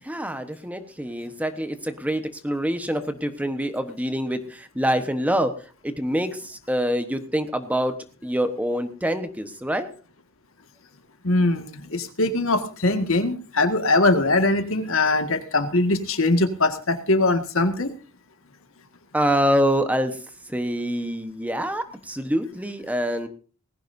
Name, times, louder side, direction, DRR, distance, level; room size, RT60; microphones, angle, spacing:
voice 1, 0.0-5.5 5.8-7.9 8.2-9.9 19.1-20.2 20.5-23.3, equal, 5° right, 8 dB, 1.1 m, -25 dB
voice 2, 11.2-17.9, left 2 dB, 65° left, 7 dB, 1.9 m, -21 dB
19.5 x 16.0 x 2.7 m, 0.38 s
head